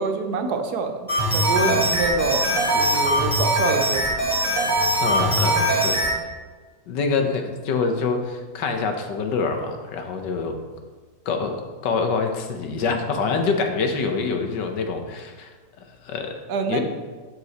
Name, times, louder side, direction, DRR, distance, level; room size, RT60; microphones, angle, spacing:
voice 1, 0.0-4.0 16.5-16.8, right 4 dB, 70° right, 6 dB, 1.3 m, -26 dB
sound 1, 1.1-6.1, right 1 dB, 15° left, 3.1 m, -21 dB
voice 2, 5.0-6.0 6.9-10.6 11.3-11.6 11.8-15.5 16.0-16.4 16.7-16.8, left 4 dB, 85° left, 5 dB, 1.6 m, -25 dB
13.0 x 4.7 x 4.1 m, 1.4 s
omnidirectional pair, 1.8 m